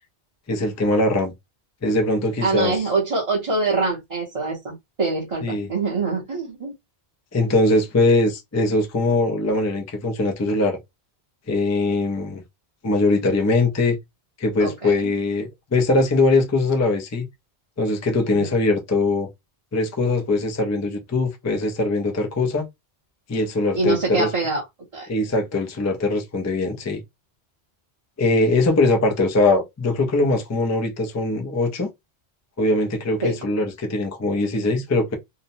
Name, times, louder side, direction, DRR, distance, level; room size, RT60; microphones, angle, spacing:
voice 1, 0.5-1.3 1.8-2.8 5.4-5.7 7.3-10.8 11.5-12.4 12.8-14.0 14.4-17.3 17.8-19.3 19.7-22.7 23.3-24.3 25.1-27.0 28.2-31.9 32.6-35.2, left 2 dB, 25° left, 0.3 m, -21 dB
voice 2, 2.4-6.7 14.6-15.1 18.3-18.5 23.7-24.6 24.9-25.1 33.2-33.3, right 3 dB, 35° right, 0.8 m, -24 dB
2.8 x 2.0 x 2.6 m
omnidirectional pair, 1.1 m